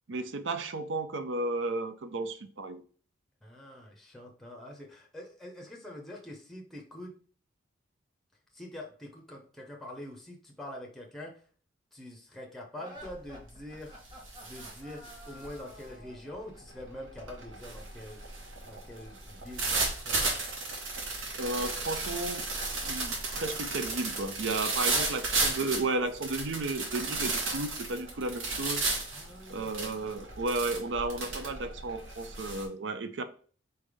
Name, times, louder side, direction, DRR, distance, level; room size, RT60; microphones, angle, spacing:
voice 1, 0.1-2.8 21.4-22.4 22.8-28.9 29.5-33.2, right 2 dB, 70° right, 0.5 m, -33 dB
voice 2, 3.4-7.1 8.5-11.4 11.9-13.9 14.4-18.2 18.6-20.2 24.9-25.1 29.1-29.7, left 1 dB, ahead, 0.7 m, -45 dB
sound 1, 12.7-16.3, left 1 dB, 20° right, 1.1 m, -50 dB
sound 2, 13.0-13.3 13.7-32.6, right 3 dB, 85° right, 1.3 m, -34 dB
4.2 x 3.4 x 3.4 m
head